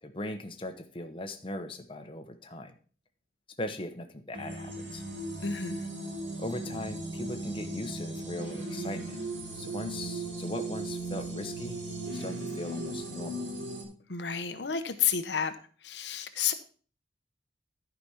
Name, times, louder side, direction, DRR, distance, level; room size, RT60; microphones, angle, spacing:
voice 1, 0.0-2.7 3.6-5.0 6.4-9.2 9.5-11.8 12.1-13.5, left 1 dB, 30° left, 5 dB, 0.9 m, -39 dB
sound 1, 4.3-13.8, right 2 dB, 75° right, 3.6 m, -37 dB
voice 2, 5.4-5.8 14.1-15.5 15.8-16.5, left 7 dB, 65° left, 8 dB, 0.9 m, -30 dB
11.5 x 5.2 x 5.7 m, 0.41 s
head